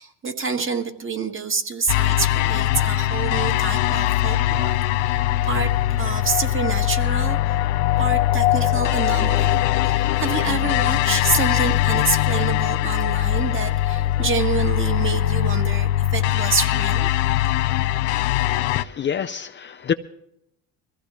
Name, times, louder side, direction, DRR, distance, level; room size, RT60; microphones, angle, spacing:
voice 1, 0.0-5.7 6.0-7.7 8.0-17.1, right 5 dB, 35° right, 5 dB, 1.7 m, -27 dB
sound 1, 1.9-18.8, left 13 dB, 90° left, 0.5 m, -21 dB
voice 2, 18.8-19.9, left 7 dB, 30° left, 8 dB, 0.5 m, -26 dB
22.0 x 15.5 x 3.1 m, 0.80 s
supercardioid pair, 75°, 36 cm